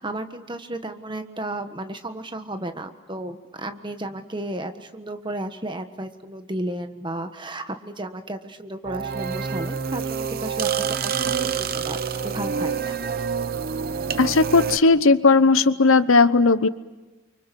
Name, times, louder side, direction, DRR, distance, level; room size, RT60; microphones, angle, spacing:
voice 1, 0.0-12.0 12.2-13.0, right 1 dB, 20° right, 8 dB, 1.4 m, -33 dB
sound 1, 8.8-14.8, right 6 dB, 45° right, 0.8 m, -27 dB
voice 2, 14.2-16.7, left 3 dB, 70° left, 14 dB, 0.9 m, -16 dB
30.0 x 25.0 x 6.9 m, 1.2 s
head